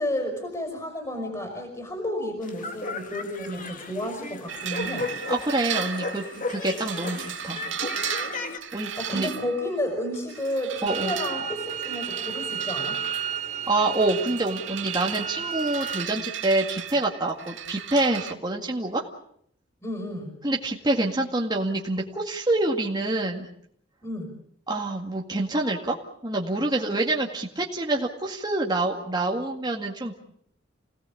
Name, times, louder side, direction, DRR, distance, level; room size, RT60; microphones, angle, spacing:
voice 1, 0.0-5.1 9.0-13.0 19.8-20.3 24.0-24.3, left 1 dB, 20° left, 3 dB, 5.3 m, -31 dB
sound 1, 2.4-8.6, left 3 dB, 45° left, 2.5 m, -35 dB
sound 2, 4.5-18.3, right 8 dB, 90° right, 2.0 m, -36 dB
voice 2, 5.3-6.2 6.5-7.6 8.7-9.3 10.8-11.1 13.7-19.1 20.4-23.5 24.7-26.0 26.2-30.1, right 2 dB, 20° right, -1 dB, 2.0 m, -26 dB
sound 3, 10.9-16.0, right 8 dB, 40° right, 1.1 m, -32 dB
29.0 x 18.0 x 8.6 m, 0.69 s
head